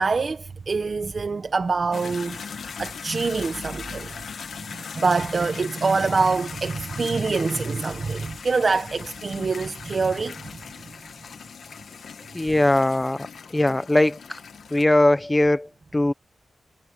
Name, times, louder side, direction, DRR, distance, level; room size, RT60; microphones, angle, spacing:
voice 1, 0.0-2.4 2.8-4.2 4.7-10.4, right 4 dB, 45° right, 1.3 m, -25 dB
sound 1, 1.9-14.8, left 6 dB, 85° left, 1.7 m, -39 dB
voice 2, 12.3-13.3 13.5-14.4 14.7-16.1, left 1 dB, 15° left, 0.9 m, -20 dB
wide cardioid pair, 150°, 0 cm